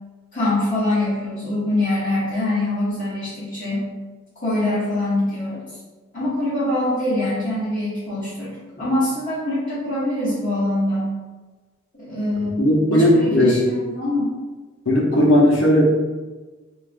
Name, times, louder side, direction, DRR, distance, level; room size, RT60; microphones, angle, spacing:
voice 1, 0.3-3.9 4.4-5.6 6.1-11.1 12.0-14.3, left 1 dB, 40° left, -11 dB, 0.8 m, -24 dB
voice 2, 12.6-13.6 14.9-15.8, left 1 dB, 85° left, -3 dB, 0.7 m, -16 dB
3.3 x 2.4 x 2.5 m, 1.3 s
head